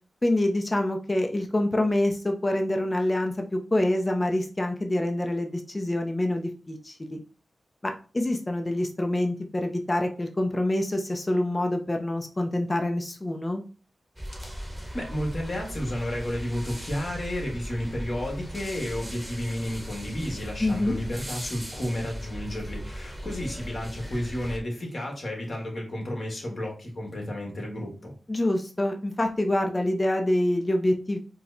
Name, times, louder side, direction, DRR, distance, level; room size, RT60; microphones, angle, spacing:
voice 1, 0.2-7.2 7.8-13.6 20.6-21.0 28.3-31.2, left 1 dB, 30° left, 4 dB, 0.6 m, -26 dB
sound 1, 14.2-24.6, equal, 10° right, 1.0 m, -38 dB
voice 2, 14.9-28.1, left 1 dB, 55° left, 0 dB, 1.5 m, -32 dB
4.5 x 2.1 x 2.7 m, 0.37 s
cardioid pair, 55°, 0 cm